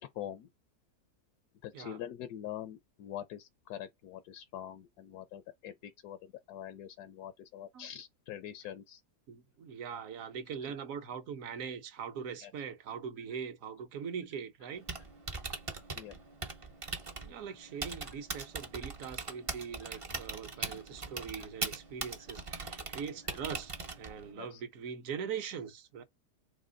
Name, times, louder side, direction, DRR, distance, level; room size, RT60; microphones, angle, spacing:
voice 1, 0.2-0.5 1.6-9.0 12.4-12.5 15.9-16.2 20.6-20.8 24.3-24.6, left 11 dB, 80° left, 1.1 m, -44 dB
voice 2, 9.3-14.9 17.2-26.0, right 7 dB, 65° right, 1.1 m, -41 dB
Typing, 14.7-24.3, right 3 dB, 40° right, 0.4 m, -41 dB
4.2 x 2.9 x 3.8 m
omnidirectional pair, 1.7 m